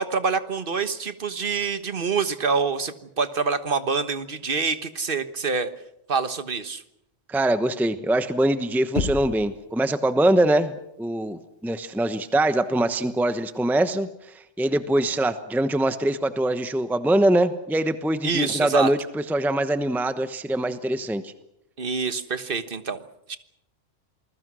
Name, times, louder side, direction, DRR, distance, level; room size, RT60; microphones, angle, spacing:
voice 1, 0.0-5.7 6.1-6.8 18.2-18.9 21.8-23.0 23.3-23.4, right 5 dB, 45° right, 11 dB, 1.5 m, -26 dB
voice 2, 7.3-21.3, right 1 dB, ahead, 10 dB, 0.9 m, -23 dB
Knock, 8.9-9.6, left 4 dB, 35° left, 1.1 m, -28 dB
28.0 x 21.0 x 6.3 m, 0.81 s
omnidirectional pair, 1.2 m